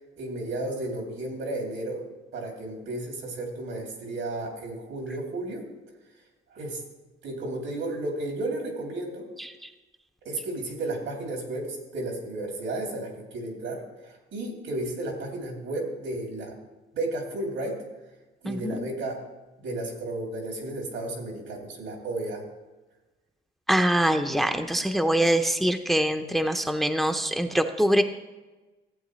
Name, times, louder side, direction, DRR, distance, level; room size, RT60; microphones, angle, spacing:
voice 1, 0.2-2.0 2.3-5.6 6.5-6.8 7.2-9.3 10.2-16.6 16.9-17.8 18.4-19.2 19.6-22.4 26.2-26.6, right 2 dB, 85° right, 0 dB, 2.7 m, -33 dB
voice 2, 18.5-18.9 23.7-28.0, right 1 dB, ahead, 7 dB, 0.6 m, -24 dB
14.5 x 8.3 x 3.1 m, 1.2 s
cardioid pair, 90°, 20 cm